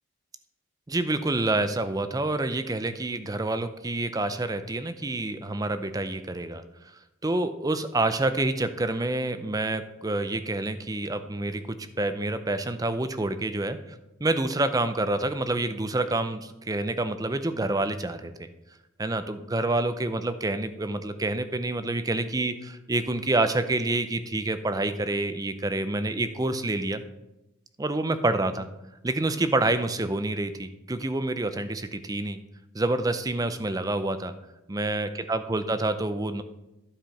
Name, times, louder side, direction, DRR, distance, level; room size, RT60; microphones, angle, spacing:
voice 1, 0.9-6.6 7.2-11.6 12.0-13.8 14.2-18.5 19.0-27.0 27.8-28.7 29.0-32.4 32.7-34.3 34.7-36.4, right 2 dB, 15° right, 11 dB, 0.5 m, -27 dB
12.0 x 5.0 x 5.7 m, 0.95 s
head